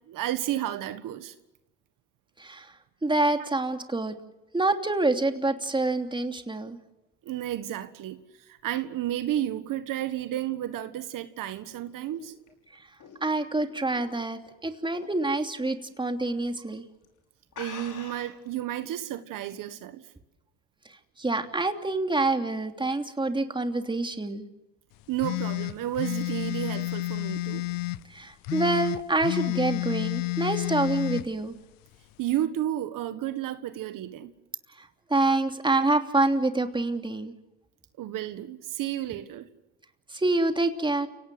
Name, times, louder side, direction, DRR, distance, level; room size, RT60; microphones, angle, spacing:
voice 1, 0.1-1.3 7.2-12.3 17.6-20.0 25.1-27.7 32.2-34.3 38.0-39.5, right 12 dB, 70° right, 1.6 m, -32 dB
voice 2, 2.4-2.7 3.0-4.1 4.5-6.8 12.7-12.8 13.2-16.8 21.2-24.4 28.1-31.5 34.8-37.3 40.1-41.1, right 2 dB, 15° right, 3.0 m, -27 dB
sound 1, 11.4-14.5 14.9-15.2 15.6-15.7 16.5-16.7 17.0-17.1 17.5-18.5, left 6 dB, 65° left, 6.1 m, -45 dB
sound 2, 25.2-28.0 28.4-31.2, left 22 dB, 85° left, 0.8 m, -30 dB
30.0 x 18.0 x 7.6 m
supercardioid pair, 85°, 33 cm